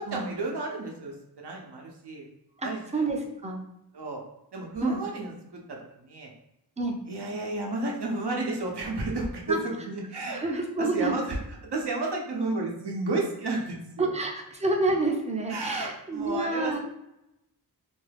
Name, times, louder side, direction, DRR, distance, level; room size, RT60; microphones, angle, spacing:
voice 1, 0.0-2.3 2.6-3.0 3.9-4.2 4.5-6.3 7.1-11.4 11.7-14.1 15.5-16.8, right 2 dB, 75° right, 0 dB, 0.7 m, -32 dB
voice 2, 2.6-3.6 4.8-5.0 6.8-7.0 9.5-9.6 10.3-11.2 14.0-16.8, right 2 dB, 15° right, 1 dB, 0.4 m, -28 dB
2.6 x 2.3 x 3.3 m, 0.85 s
wide cardioid pair, 85°, 40 cm